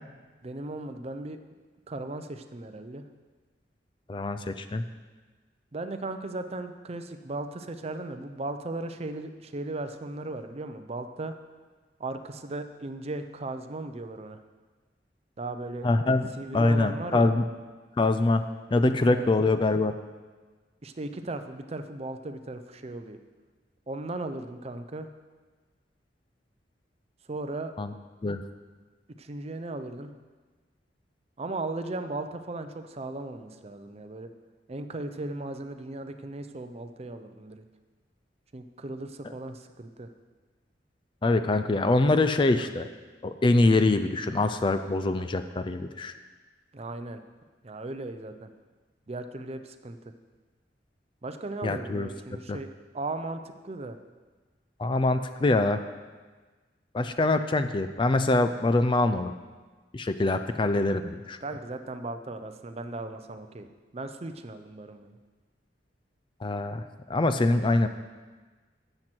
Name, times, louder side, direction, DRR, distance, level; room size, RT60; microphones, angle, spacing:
voice 1, 0.4-1.4 1.9-3.0 5.7-11.4 12.0-14.4 15.4-15.9 16.4-17.3 19.1-19.6 20.8-23.2 23.9-25.1 27.3-27.7 29.2-30.1 31.4-34.3 34.7-37.6 38.5-40.1 46.7-47.2 47.6-48.5 49.1-50.0 51.2-52.7 52.9-54.0 61.4-63.7 63.9-65.2, right 2 dB, 35° right, 8 dB, 0.6 m, -37 dB
voice 2, 4.1-4.8 15.8-16.3 16.5-17.4 18.0-18.4 18.7-19.9 27.8-27.9 28.2-28.4 41.2-42.9 43.2-46.1 51.6-52.1 52.5-52.6 54.8-55.8 56.9-59.3 59.9-61.4 66.4-67.9, left 2 dB, 25° left, 10 dB, 0.4 m, -24 dB
12.0 x 7.8 x 4.5 m, 1.3 s
head